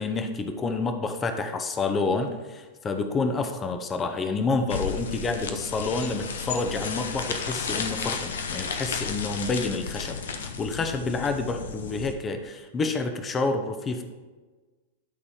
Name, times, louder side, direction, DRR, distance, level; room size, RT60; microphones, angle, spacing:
voice 1, 0.0-14.0, left 3 dB, 25° left, 7 dB, 0.8 m, -28 dB
sound 1, 4.7-12.1, left 5 dB, 80° left, 0.9 m, -33 dB
11.5 x 4.1 x 4.8 m, 1.3 s
hypercardioid pair, 105°, 0 cm